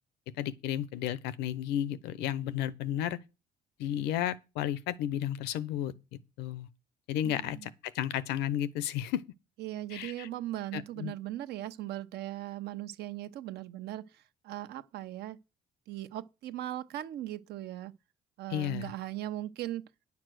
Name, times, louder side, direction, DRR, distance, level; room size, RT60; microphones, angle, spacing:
voice 1, 0.4-3.2 3.8-5.9 6.4-6.7 7.1-9.2 9.9-10.3 10.7-11.1 18.5-18.9, left 11 dB, 90° left, 0.9 m, -33 dB
voice 2, 7.2-7.7 9.6-15.4 15.9-17.9 18.4-19.8, right 14 dB, 75° right, 1.0 m, -39 dB
10.0 x 7.2 x 6.3 m
cardioid pair, 110°, 17 cm